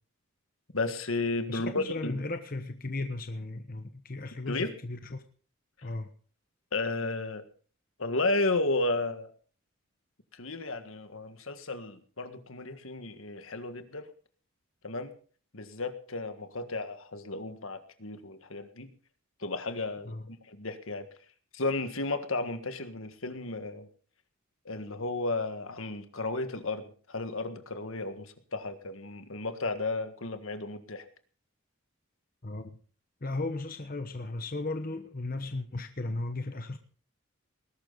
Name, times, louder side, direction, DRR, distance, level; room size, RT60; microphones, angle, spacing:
voice 1, 0.7-2.1 4.5-4.7 6.7-7.4 8.0-9.3 10.3-14.1 14.8-15.1 15.5-18.9 19.4-21.1 21.5-23.9 24.7-31.0, left 2 dB, 75° left, 9 dB, 1.7 m, -33 dB
voice 2, 1.5-5.2 5.8-6.1 20.0-20.3 32.4-32.8 33.2-36.8, left 2 dB, 40° left, 7 dB, 1.1 m, -36 dB
20.0 x 12.0 x 4.0 m, 0.42 s
head